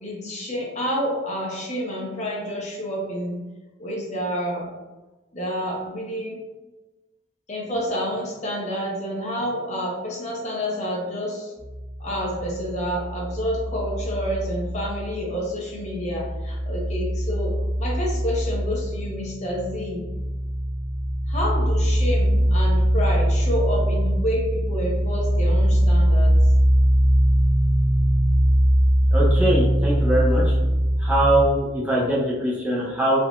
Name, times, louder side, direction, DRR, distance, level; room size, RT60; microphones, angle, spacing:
voice 1, 0.0-3.4 3.8-4.7 5.3-6.4 7.5-11.5 12.0-17.5 17.8-20.0 21.3-26.4, equal, 40° left, -3 dB, 0.7 m, -28 dB
sound 1, 11.6-15.4 15.7-31.5, equal, 75° left, 1.2 m, -22 dB
voice 2, 29.1-30.4 31.0-33.2, right 1 dB, 10° right, -7 dB, 0.6 m, -22 dB
3.6 x 2.6 x 2.3 m, 1.1 s
head